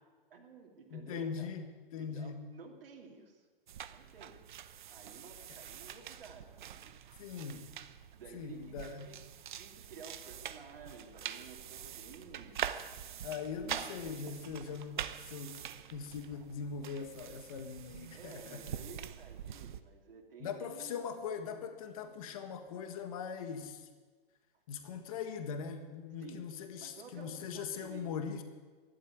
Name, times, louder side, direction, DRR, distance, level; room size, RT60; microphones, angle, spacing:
voice 1, 0.3-1.5 2.0-3.5 3.9-4.4 4.9-7.2 8.1-9.2 9.5-12.8 18.1-21.0 26.2-26.5 26.8-28.2, right 5 dB, 70° right, 0 dB, 2.8 m, -53 dB
voice 2, 0.9-1.7 1.9-2.4 7.2-7.7 8.3-9.1 13.2-15.6 15.9-18.6 20.4-23.9 24.7-28.4, left 6 dB, 35° left, 7 dB, 1.6 m, -41 dB
sound 1, 3.7-19.8, right 9 dB, 55° right, 0.9 m, -45 dB
12.0 x 11.5 x 9.6 m, 1.4 s
hypercardioid pair, 165°, 29 cm